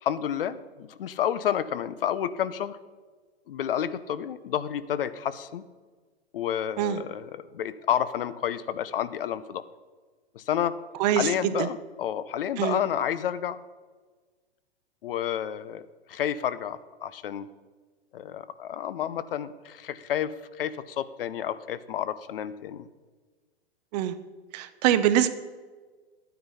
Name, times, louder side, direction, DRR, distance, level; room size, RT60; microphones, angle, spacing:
voice 1, 0.0-2.8 3.5-5.6 6.3-9.6 10.3-10.7 11.1-13.6 15.0-15.8 16.1-17.5 18.1-22.9, left 10 dB, 60° left, 14 dB, 0.7 m, -30 dB
voice 2, 11.0-11.7 12.6-12.8 23.9-24.1 24.5-25.3, right 11 dB, 40° right, 12 dB, 0.8 m, -24 dB
12.0 x 9.4 x 5.6 m, 1.4 s
figure-of-eight pair, 110°, 32 cm